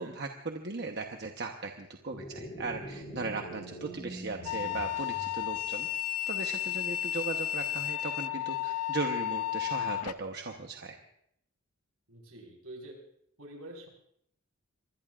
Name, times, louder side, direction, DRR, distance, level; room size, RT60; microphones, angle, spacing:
voice 1, 0.0-5.9 6.3-11.0, right 3 dB, 50° right, 3 dB, 1.0 m, -38 dB
sound 1, 2.1-5.7, right 1 dB, 25° left, 2.8 m, -44 dB
sound 2, 4.5-10.1, left 12 dB, 85° left, 0.5 m, -33 dB
voice 2, 12.1-12.9 13.4-13.9, right 1 dB, 75° right, 1 dB, 5.0 m, -46 dB
25.0 x 20.5 x 2.5 m, 0.71 s
head